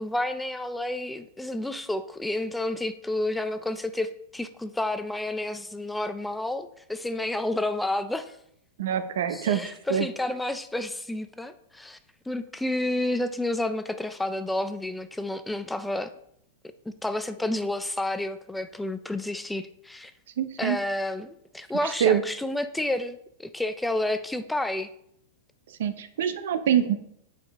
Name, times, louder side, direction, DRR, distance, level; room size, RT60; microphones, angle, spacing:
voice 1, 0.0-8.4 9.3-12.0 12.3-16.1 17.0-20.1 20.6-24.9, left 1 dB, 5° left, 10 dB, 0.3 m, -30 dB
voice 2, 8.8-10.1 20.4-20.8 21.8-22.2 25.8-26.9, right 9 dB, 75° right, 11 dB, 0.7 m, -25 dB
7.5 x 5.0 x 3.5 m, 0.73 s
supercardioid pair, 155°, 0 cm